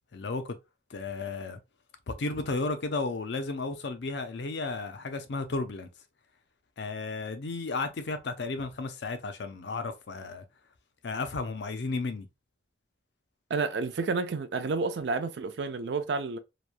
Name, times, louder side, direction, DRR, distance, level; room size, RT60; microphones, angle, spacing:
voice 1, 0.1-0.6 0.9-1.6 2.1-5.9 6.8-10.4 11.0-12.3, left 3 dB, 70° left, 0.5 m, -33 dB
voice 2, 13.5-16.4, right 4 dB, 65° right, 0.4 m, -30 dB
2.9 x 2.2 x 2.3 m
head